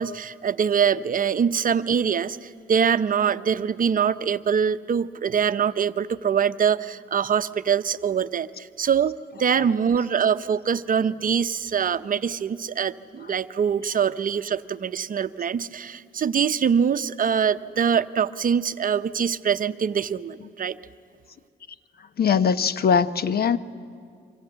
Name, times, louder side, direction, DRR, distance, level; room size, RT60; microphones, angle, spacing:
voice 1, 0.0-9.1 9.4-20.8, right 7 dB, 45° right, 12 dB, 0.8 m, -24 dB
voice 2, 22.0-23.6, left 6 dB, 50° left, 14 dB, 1.1 m, -21 dB
27.5 x 24.5 x 8.1 m, 2.3 s
cardioid pair, 90°, 20 cm